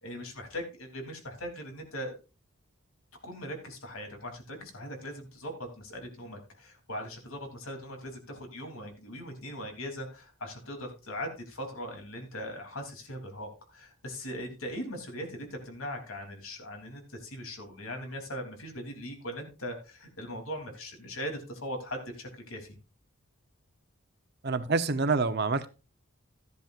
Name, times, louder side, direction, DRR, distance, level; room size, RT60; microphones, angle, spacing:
voice 1, 0.0-2.1 3.2-22.8, equal, 80° left, 3.2 m, -40 dB
voice 2, 24.4-25.7, right 4 dB, 50° right, 0.8 m, -27 dB
14.0 x 10.5 x 2.5 m
head